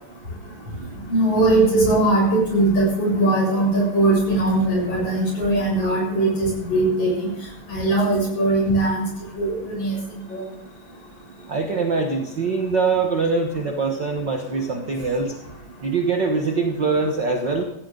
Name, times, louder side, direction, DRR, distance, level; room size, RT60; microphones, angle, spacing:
voice 1, 1.1-7.3 7.7-9.0 9.4-10.0 10.3-10.4, right 2 dB, 45° left, -2 dB, 8.1 m, -20 dB
voice 2, 11.5-15.3 15.8-17.6, right 4 dB, 50° right, 4 dB, 1.4 m, -23 dB
16.0 x 15.5 x 3.9 m, 0.83 s
omnidirectional pair, 3.7 m